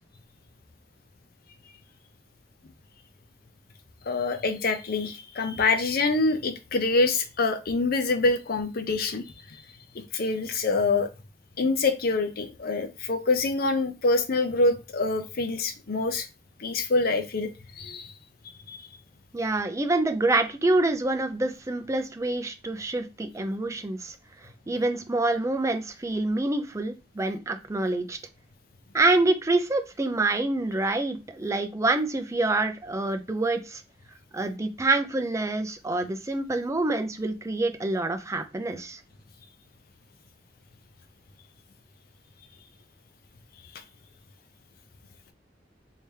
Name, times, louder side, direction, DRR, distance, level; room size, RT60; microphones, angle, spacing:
voice 1, 4.1-9.2 9.9-11.1 11.6-16.3 16.6-18.1 18.7-18.8, left 3 dB, 55° left, 0.6 m, -25 dB
voice 2, 19.3-24.2 24.7-28.2 28.9-33.8 34.3-39.0, right 2 dB, 15° right, 0.5 m, -26 dB
3.4 x 2.7 x 3.3 m
head